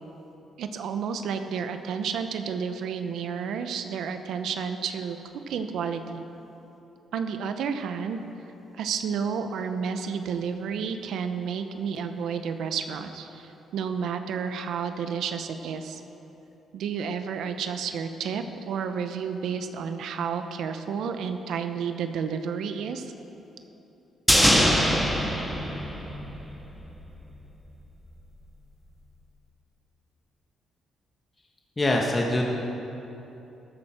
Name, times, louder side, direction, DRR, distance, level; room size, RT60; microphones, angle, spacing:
voice 1, 0.6-5.2 5.5-6.2 7.1-8.2 8.7-16.0 16.7-23.1, right 6 dB, 75° right, 8 dB, 0.8 m, -31 dB
sound 1, 24.3-26.7 26.9-27.0, equal, 5° left, 1.7 m, -22 dB
voice 2, 31.8-32.4, left 1 dB, 20° left, 0 dB, 1.3 m, -23 dB
14.5 x 12.0 x 4.4 m, 3.0 s
cardioid pair, 90°, 0 cm